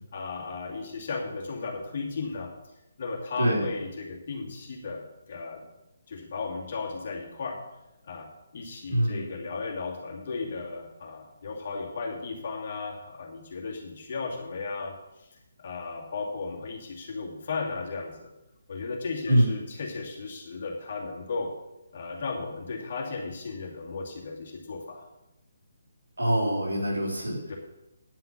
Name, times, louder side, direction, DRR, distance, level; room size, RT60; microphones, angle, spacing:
voice 1, 0.1-2.5 3.0-5.6 6.1-7.6 8.0-18.3 18.7-21.5 21.9-25.0 27.5-27.6, left 4 dB, 50° left, 0 dB, 2.5 m, -35 dB
voice 2, 8.9-9.2 19.3-19.5 26.2-27.4, right 1 dB, 80° right, -2 dB, 3.4 m, -24 dB
10.0 x 5.7 x 7.3 m, 0.91 s
figure-of-eight pair, 145°, 0 cm